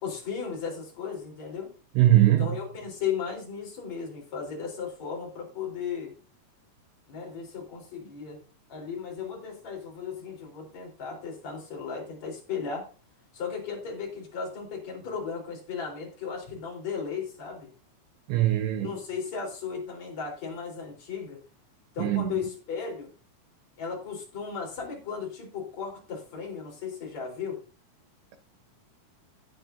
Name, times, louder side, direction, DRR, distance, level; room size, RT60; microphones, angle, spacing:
voice 1, 0.0-1.7 2.4-6.1 7.1-8.4 8.7-12.9 13.3-17.7 18.8-21.4 21.9-23.1 23.8-27.6, left 6 dB, 35° left, 4.8 m, -35 dB
voice 2, 2.0-2.6 18.3-18.9 22.0-22.3, right 14 dB, 85° right, 2.5 m, -21 dB
14.5 x 9.6 x 2.7 m
omnidirectional pair, 6.0 m